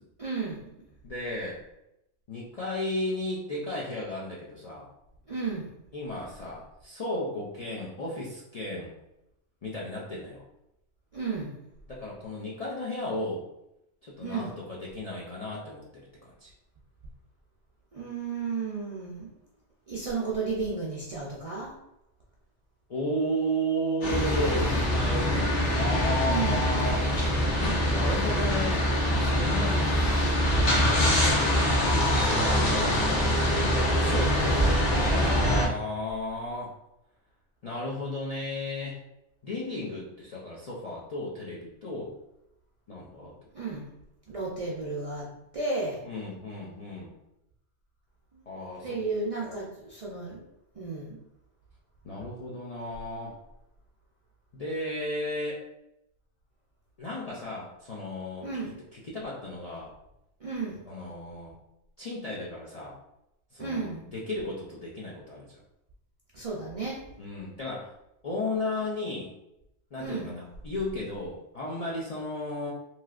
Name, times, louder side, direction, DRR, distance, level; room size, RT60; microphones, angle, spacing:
voice 1, 0.2-0.8 5.3-5.7 11.1-11.5 14.2-14.6 17.9-19.3 19.9-21.7 26.2-26.7 34.0-34.5 43.5-43.9 44.3-45.3 45.5-46.0 48.3-48.4 48.8-50.4 50.7-51.2 58.4-58.8 60.4-60.9 63.6-64.1 66.3-67.0 70.0-70.4, right 4 dB, 50° right, -5 dB, 0.4 m, -33 dB
voice 2, 1.0-1.6 2.3-4.9 5.9-8.9 9.6-10.4 11.9-13.5 14.0-16.5 22.9-27.0 27.9-28.8 29.1-30.2 32.2-33.2 34.8-36.7 37.6-39.0 39.4-42.2 42.9-43.3 46.0-47.1 48.5-49.0 49.4-49.6 52.0-53.3 54.5-55.6 57.0-58.5 59.0-59.9 60.9-61.5 62.0-62.9 63.5-65.5 67.2-67.9 68.2-69.3 69.9-72.7, left 1 dB, 55° left, -5 dB, 0.4 m, -34 dB
sound 1, 24.0-35.7, equal, 85° left, 1.2 m, -24 dB
3.1 x 2.8 x 2.4 m, 0.86 s
omnidirectional pair, 1.2 m